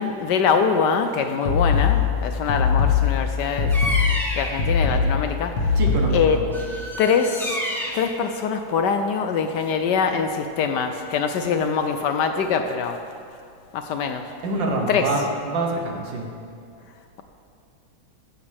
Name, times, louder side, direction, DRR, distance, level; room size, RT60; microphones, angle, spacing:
voice 1, 0.0-4.1 4.4-5.8 6.1-6.4 7.0-7.6 7.9-13.0 13.7-14.3 14.9-15.1, left 6 dB, 70° left, 7 dB, 1.1 m, -23 dB
sound 1, 1.5-6.4, left 5 dB, 50° left, 2.0 m, -21 dB
Bird vocalization bird call bird song, 3.7-4.7 6.5-8.1, equal, ahead, 1.1 m, -29 dB
voice 2, 5.8-6.6 14.4-16.3, right 2 dB, 70° right, 1 dB, 1.9 m, -26 dB
15.0 x 10.5 x 3.5 m, 2.4 s
omnidirectional pair, 2.1 m